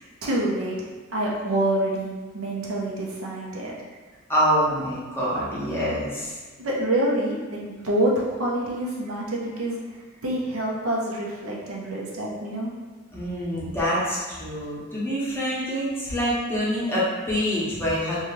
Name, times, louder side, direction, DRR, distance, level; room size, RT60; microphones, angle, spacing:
voice 1, 0.2-0.7 1.1-3.7 6.6-12.7, right 1 dB, 80° right, -4 dB, 0.7 m, -27 dB
voice 2, 4.3-6.4 13.1-18.2, equal, 10° left, -8 dB, 0.7 m, -26 dB
2.7 x 2.3 x 3.1 m, 1.4 s
head